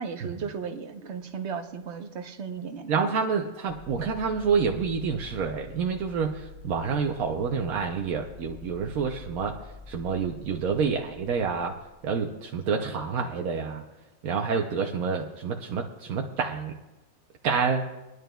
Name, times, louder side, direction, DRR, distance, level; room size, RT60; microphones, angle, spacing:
voice 1, 0.0-2.9, right 6 dB, 55° right, 7 dB, 1.1 m, -35 dB
voice 2, 2.9-9.6 9.9-11.8 12.0-13.8 14.2-16.7 17.4-17.9, right 5 dB, 85° right, 3 dB, 1.2 m, -28 dB
sound 1, 3.7-12.4, left 2 dB, 30° right, 1.7 m, -47 dB
24.0 x 11.0 x 2.3 m, 1.0 s
omnidirectional pair, 1.4 m